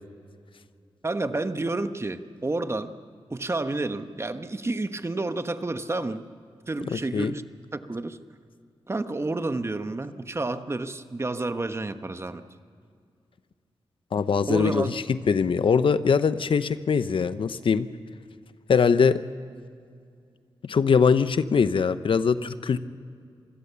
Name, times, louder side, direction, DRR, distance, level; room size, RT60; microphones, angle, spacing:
voice 1, 1.0-2.9 3.3-6.2 6.7-7.4 7.7-8.2 8.9-12.4 14.5-15.0, right 2 dB, 30° right, 10 dB, 1.1 m, -30 dB
voice 2, 6.9-7.3 14.1-17.9 18.7-19.2 20.6-22.8, left 6 dB, 65° left, 13 dB, 0.8 m, -22 dB
25.5 x 16.5 x 6.9 m, 2.3 s
cardioid pair, 60°, 10 cm